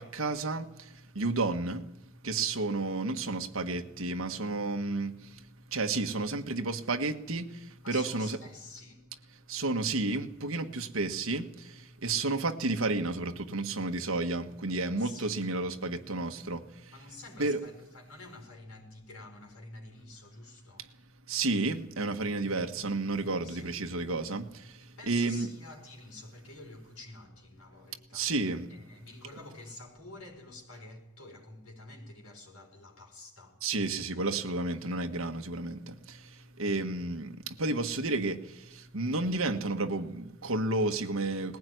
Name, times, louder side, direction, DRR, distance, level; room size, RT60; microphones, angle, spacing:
voice 1, 0.0-1.9 2.2-8.4 9.5-16.9 17.4-17.6 20.8-20.9 21.3-25.5 28.1-28.7 33.6-41.6, right 3 dB, 80° right, 1.5 m, -32 dB
voice 2, 7.8-9.0 15.0-15.4 16.9-20.9 22.4-22.6 23.4-23.7 25.0-28.3 28.7-33.6 36.6-36.9, left 2 dB, 90° left, 5.0 m, -49 dB
20.0 x 15.5 x 9.4 m
head